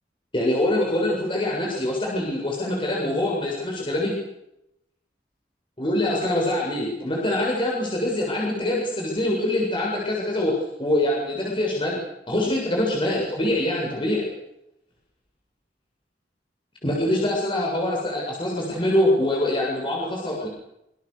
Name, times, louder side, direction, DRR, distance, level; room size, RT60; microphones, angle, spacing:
voice 1, 0.3-4.1 5.8-10.5 10.8-12.0 12.3-14.3 16.8-20.5, left 1 dB, 30° left, -3 dB, 7.5 m, -24 dB
27.0 x 26.5 x 6.8 m, 0.84 s
head